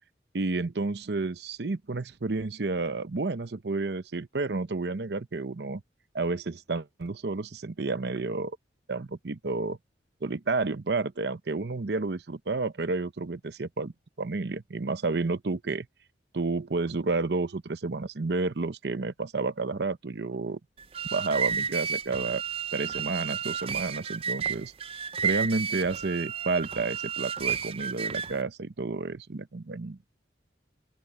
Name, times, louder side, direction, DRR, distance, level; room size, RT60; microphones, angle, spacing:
voice 1, 0.3-5.8 6.1-8.6 8.9-9.8 10.2-15.9 16.3-20.6 21.1-22.4 22.7-24.7 25.2-30.0, right 3 dB, 65° right, 0.7 m, -31 dB
sound 1, 20.8-28.4, right 7 dB, 30° right, 0.4 m, -32 dB
open air
head